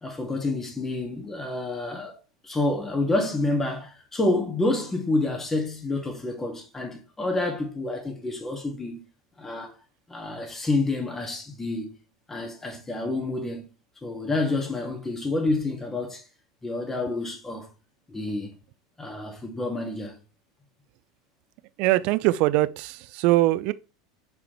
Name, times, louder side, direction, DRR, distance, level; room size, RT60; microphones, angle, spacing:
voice 1, 0.0-2.2 2.4-9.0 9.4-9.7 10.1-11.9 12.3-13.7 14.0-16.2 16.6-17.7 18.1-18.5 19.0-20.2, left 2 dB, 15° left, 2.2 m, -28 dB
voice 2, 21.8-23.7, right 17 dB, 55° right, 0.4 m, -22 dB
6.9 x 4.8 x 3.3 m
hypercardioid pair, 85°, 2 cm